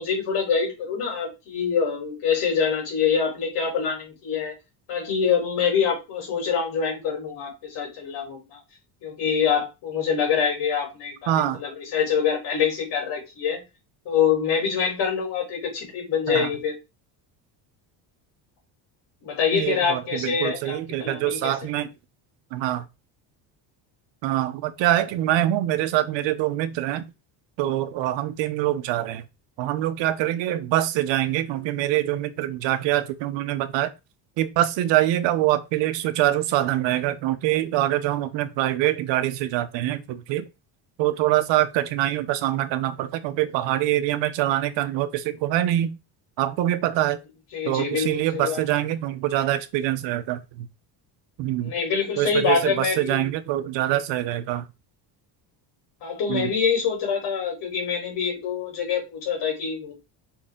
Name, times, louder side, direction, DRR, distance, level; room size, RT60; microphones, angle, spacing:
voice 1, 0.0-4.5 4.9-8.6 9.0-13.6 14.1-16.7 19.2-21.5 47.5-48.6 51.6-53.3 56.0-59.9, left 6 dB, 65° left, 3.9 m, -25 dB
voice 2, 11.3-11.6 16.3-16.5 19.5-21.9 22.5-22.9 24.2-27.1 27.6-29.2 29.6-33.9 34.4-40.4 41.0-45.9 46.4-47.2 47.7-50.7 51.4-51.7 52.2-54.7 56.3-56.5, right 13 dB, 80° right, 1.0 m, -24 dB
5.5 x 4.6 x 3.8 m
cardioid pair, 180°, 43 cm